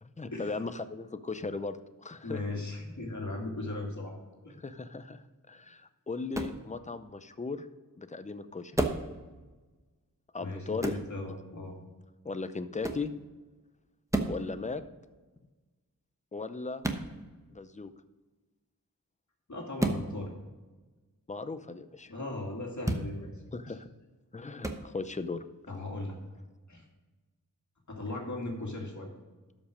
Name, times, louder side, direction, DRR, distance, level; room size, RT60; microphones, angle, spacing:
voice 1, 0.0-2.4 4.6-7.7 7.9-8.7 10.3-10.9 12.2-13.1 14.3-14.8 16.3-16.8 17.5-17.9 21.3-22.1 23.5-23.9 24.3-25.4, left 4 dB, 20° left, 11 dB, 0.6 m, -37 dB
voice 2, 2.2-4.1 4.4-4.5 10.4-11.8 19.5-20.3 22.1-23.3 25.7-26.2 26.7-26.8 27.9-29.1, left 2 dB, 55° left, 0 dB, 2.3 m, -37 dB
sound 1, 6.3-6.6 8.7-9.1 10.8-11.1 12.8-13.1 14.1-14.4 16.8-17.1 19.8-20.0 22.8-23.1 24.6-24.8, right 2 dB, 10° right, 1.0 m, -30 dB
12.5 x 5.4 x 5.0 m, 1.2 s
wide cardioid pair, 80°, 35 cm